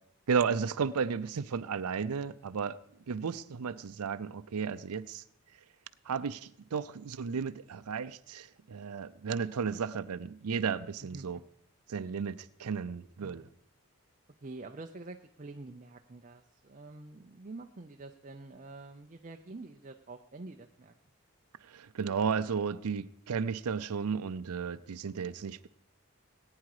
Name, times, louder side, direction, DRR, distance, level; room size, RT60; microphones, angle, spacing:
voice 1, 0.3-2.8 3.1-5.2 6.0-11.4 11.9-13.5 21.6-25.7, right 6 dB, 85° right, 0.5 m, -34 dB
voice 2, 11.0-11.4 13.2-13.6 14.4-20.9, right 2 dB, 35° right, 0.5 m, -47 dB
19.0 x 9.6 x 4.8 m
head